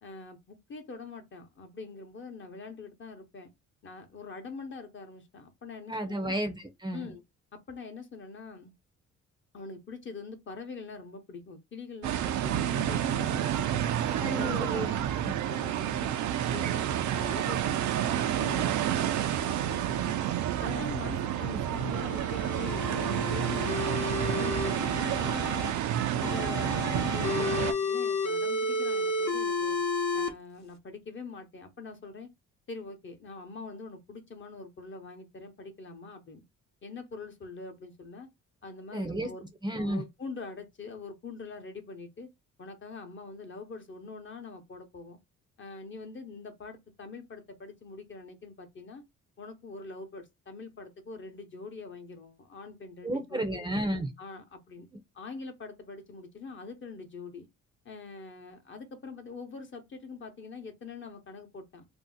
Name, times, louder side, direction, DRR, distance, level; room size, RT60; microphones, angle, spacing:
voice 1, 0.0-3.5 3.8-6.3 6.9-7.2 7.5-8.7 9.5-13.8 14.3-14.8 15.1-16.1 16.5-19.1 19.5-20.2 20.6-25.7 26.1-29.8 30.1-32.3 32.7-36.4 36.8-38.3 38.6-39.4 39.8-42.3 42.6-45.2 45.6-49.0 49.4-53.6 54.2-54.9 55.1-57.5 57.8-61.9, left 4 dB, 40° left, 0.9 m, -44 dB
voice 2, 5.9-7.1 14.2-15.3 38.9-39.3 39.6-40.0 53.0-54.1, right 1 dB, 15° right, 0.5 m, -32 dB
sound 1, 12.0-27.7, right 11 dB, 70° right, 0.5 m, -29 dB
sound 2, 21.8-25.7 26.2-30.3, left 3 dB, 65° left, 0.9 m, -32 dB
2.7 x 2.0 x 3.8 m
cardioid pair, 90°, 30 cm